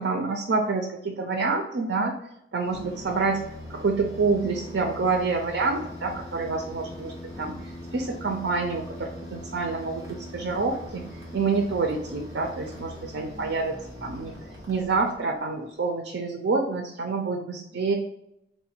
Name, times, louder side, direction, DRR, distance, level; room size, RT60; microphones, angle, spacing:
voice 1, 0.0-2.2 2.5-3.4 3.7-14.4 14.7-17.9, right 4 dB, 80° right, 3 dB, 0.5 m, -27 dB
sound 1, 2.6-15.5, equal, 20° right, 0.9 m, -41 dB
4.0 x 2.1 x 4.3 m, 0.79 s
head